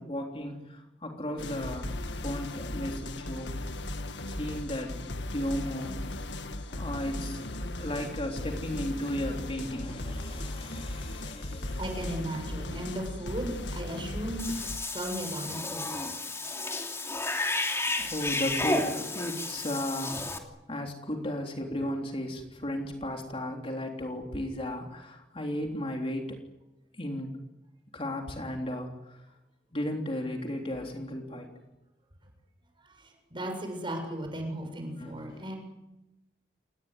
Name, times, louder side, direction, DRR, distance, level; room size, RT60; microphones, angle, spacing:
voice 1, 0.0-2.0 2.2-3.6 4.3-12.0 17.9-20.3 20.7-26.4 26.9-27.4 27.9-29.2 29.7-31.5 35.0-35.4, left 1 dB, 30° left, 2 dB, 3.6 m, -35 dB
sound 1, 1.4-14.8, left 1 dB, 75° left, 1.7 m, -37 dB
voice 2, 11.8-14.5 14.9-15.9 32.8-35.6, right 1 dB, 30° right, 3 dB, 7.5 m, -36 dB
Cat / Bathtub (filling or washing), 14.4-20.4, left 2 dB, 15° left, 3.0 m, -32 dB
28.5 x 20.0 x 9.8 m, 0.99 s
head